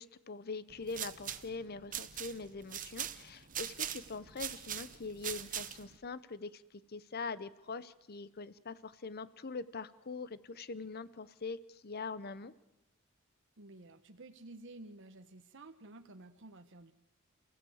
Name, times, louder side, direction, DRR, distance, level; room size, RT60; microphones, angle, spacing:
voice 1, 0.0-6.6 6.9-12.5, left 4 dB, 50° left, 16 dB, 0.8 m, -43 dB
sound 1, 0.7-6.0, right 10 dB, 40° right, 1.0 m, -42 dB
voice 2, 13.6-16.9, right 2 dB, 65° right, 7 dB, 1.1 m, -52 dB
28.5 x 16.0 x 7.9 m, 0.99 s
head